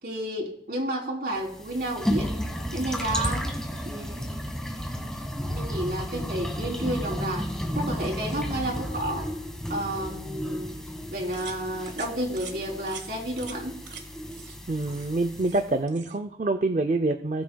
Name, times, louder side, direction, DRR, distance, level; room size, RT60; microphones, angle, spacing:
voice 1, 0.0-2.3 2.7-3.5 3.9-4.3 5.5-7.5 7.8-9.3 9.7-10.7 11.1-13.8, right 1 dB, 60° right, -1 dB, 3.5 m, -31 dB
sound 1, 1.4-15.7, equal, 5° left, 1.4 m, -33 dB
sound 2, 11.3-11.6 11.9-12.1 12.4-12.6 12.9-13.0 13.4-13.6 13.9-14.0 14.3-14.6 14.8-15.6 15.9-16.2, right 7 dB, 85° right, 1.5 m, -43 dB
voice 2, 14.7-17.4, right 2 dB, 40° right, 8 dB, 0.5 m, -26 dB
19.5 x 9.5 x 2.3 m, 0.74 s
head